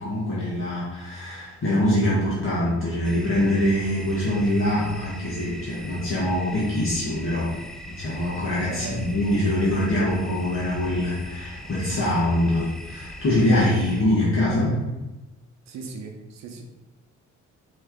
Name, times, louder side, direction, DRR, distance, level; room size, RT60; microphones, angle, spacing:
voice 1, 0.0-7.5 7.9-14.8, left 1 dB, 45° left, -7 dB, 1.4 m, -24 dB
sound 1, 3.0-14.0, left 1 dB, ahead, 0.4 m, -40 dB
voice 2, 8.7-9.0 15.7-16.6, right 3 dB, 65° right, 3 dB, 0.8 m, -36 dB
4.4 x 3.2 x 3.7 m, 1.1 s
cardioid pair, 90°, 30 cm